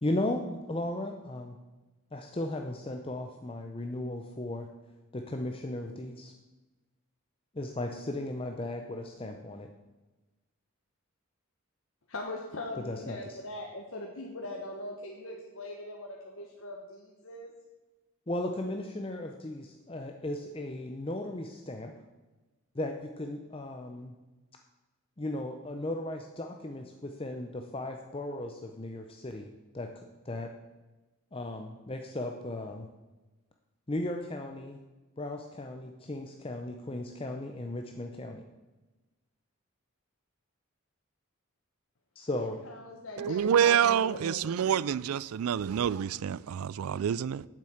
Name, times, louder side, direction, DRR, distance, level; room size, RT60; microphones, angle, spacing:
voice 1, 0.0-1.6 2.1-4.7 5.1-6.3 7.5-9.7 12.8-13.4 18.3-21.9 22.7-24.1 25.2-30.5 31.3-32.9 33.9-34.8 35.2-38.4 42.2-42.6, left 1 dB, 25° left, 0.6 m, -36 dB
voice 2, 12.1-17.5 42.4-44.7, left 1 dB, 65° left, 1.2 m, -41 dB
voice 3, 43.2-47.5, right 8 dB, 80° right, 0.3 m, -27 dB
9.4 x 7.5 x 7.8 m
head